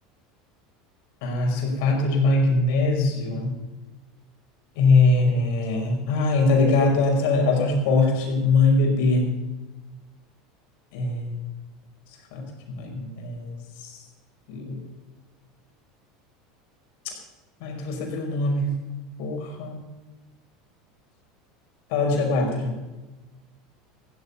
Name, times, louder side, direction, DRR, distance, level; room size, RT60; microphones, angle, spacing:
voice 1, 1.2-3.5 4.8-9.3 10.9-11.4 12.3-13.5 13.8-14.0 14.5-14.8 17.6-18.7 19.2-19.8 21.9-22.7, left 3 dB, 70° left, 2 dB, 5.2 m, -22 dB
15.0 x 13.5 x 5.6 m, 1.2 s
hypercardioid pair, 95°, 0 cm